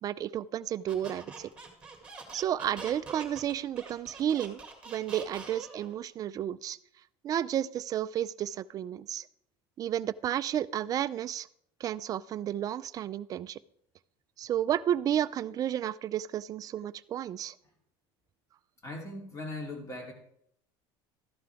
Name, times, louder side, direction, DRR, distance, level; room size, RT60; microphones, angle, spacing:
voice 1, 0.0-1.5 2.3-4.6 4.9-6.8 7.2-9.3 9.8-11.5 11.8-13.6 14.4-17.5, right 10 dB, 30° right, 14 dB, 0.4 m, -32 dB
Squeak, 0.9-5.9, right 4 dB, 10° right, 2.1 m, -45 dB
voice 2, 18.8-20.1, left 2 dB, 25° left, 1 dB, 2.8 m, -39 dB
13.0 x 11.5 x 3.5 m, 0.71 s
cardioid pair, 150°, 12 cm